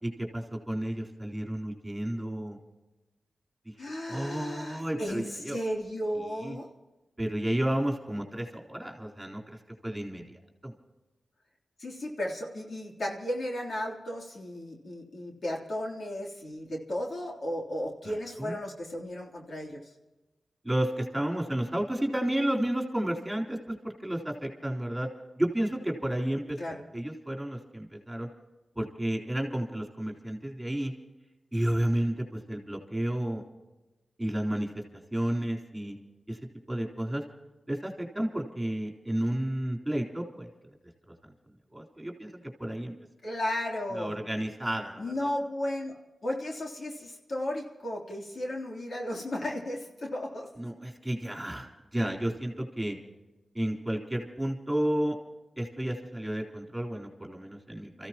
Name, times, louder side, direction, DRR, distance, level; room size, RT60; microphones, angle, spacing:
voice 1, 0.0-2.6 3.7-3.8 4.1-5.6 6.4-6.6 7.2-10.7 18.0-18.1 18.4-18.6 20.6-25.1 25.4-26.6 26.9-28.3 28.8-30.9 31.5-33.4 34.2-34.8 35.1-36.0 36.3-36.4 36.7-37.2 37.7-40.5 41.7-42.9 43.9-45.3 50.6-53.0 53.5-55.2 55.6-58.1, right 1 dB, 10° right, 0 dB, 3.8 m, -32 dB
voice 2, 3.8-6.7 11.8-19.8 26.6-26.8 43.2-44.2 45.0-46.0 46.2-50.5, left 1 dB, 65° left, -1 dB, 3.3 m, -34 dB
28.5 x 15.5 x 3.0 m, 1.1 s
cardioid pair, 65°, 0 cm